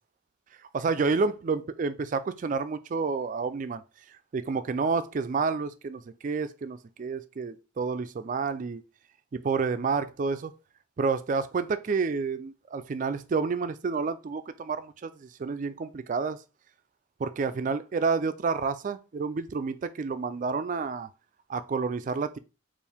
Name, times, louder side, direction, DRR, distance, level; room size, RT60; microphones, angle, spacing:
voice 1, 0.7-3.8 4.3-8.8 9.3-10.5 11.0-16.4 17.2-21.1 21.5-22.4, right 4 dB, 45° right, 0.3 m, -29 dB
4.4 x 2.5 x 3.5 m
head